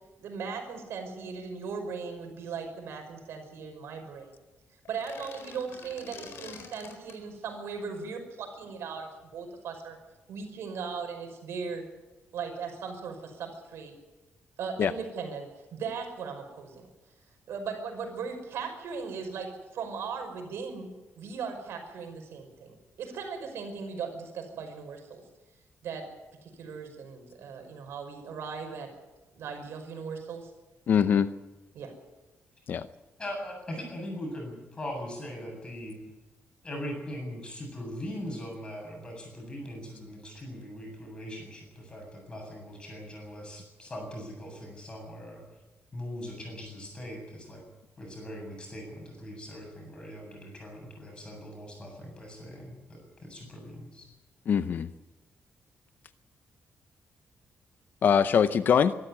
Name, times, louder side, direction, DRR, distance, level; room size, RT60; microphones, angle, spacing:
voice 1, 0.2-4.4 4.9-10.0 10.3-11.9 12.3-13.9 14.6-16.9 17.5-20.9 21.2-25.2 25.8-26.1 26.4-28.9 29.4-30.5 31.7-31.9, right 5 dB, 80° right, 5 dB, 5.6 m, -38 dB
sound 1, 4.9-7.2, left 5 dB, 70° left, 4.2 m, -46 dB
voice 2, 30.9-31.3 32.7-32.9 54.5-54.9 58.0-58.9, left 7 dB, 50° left, 12 dB, 0.7 m, -23 dB
voice 3, 33.2-36.0 36.6-45.4 45.9-47.6 48.0-54.1, equal, 20° left, 1 dB, 7.8 m, -40 dB
24.0 x 13.0 x 9.8 m, 1.1 s
wide cardioid pair, 175°, 4 cm